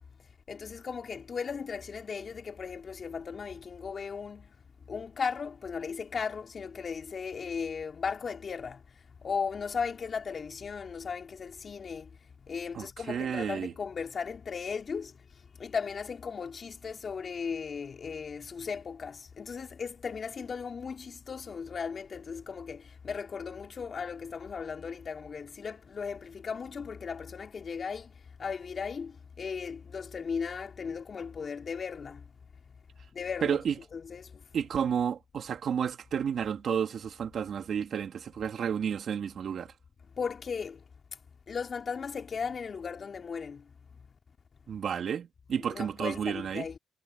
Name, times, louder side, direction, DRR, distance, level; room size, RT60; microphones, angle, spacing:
voice 1, 0.5-4.5 4.9-8.8 9.2-12.1 12.5-15.1 15.6-28.1 28.4-32.2 33.1-33.6 33.9-34.3 40.2-40.8 41.5-43.6 45.7-46.8, left 6 dB, 45° left, 3.5 m, -36 dB
voice 2, 12.7-13.7 33.4-33.7 34.5-39.7 44.7-46.7, right 7 dB, 60° right, 3.1 m, -31 dB
cardioid pair, 90°, 0 cm